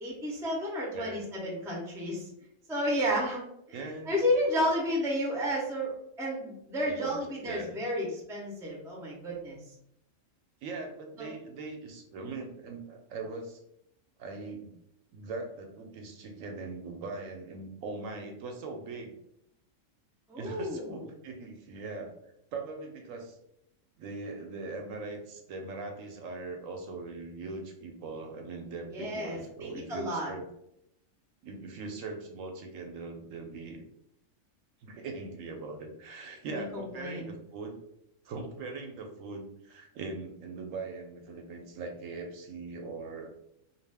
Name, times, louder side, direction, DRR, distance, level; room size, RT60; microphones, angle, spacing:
voice 1, 0.0-2.3 2.7-3.4 3.7-9.6 11.2-11.3 20.3-21.0 28.9-30.3 36.5-37.3, equal, 5° right, -3 dB, 0.4 m, -32 dB
voice 2, 0.9-1.2 3.7-4.2 6.9-7.8 10.6-13.6 14.2-14.7 15.1-19.1 20.4-22.1 22.5-23.4 24.0-30.5 31.4-33.8 34.8-37.8 38.2-43.3, right 3 dB, 80° right, 3 dB, 1.0 m, -40 dB
2.4 x 2.4 x 3.3 m, 0.77 s
omnidirectional pair, 1.3 m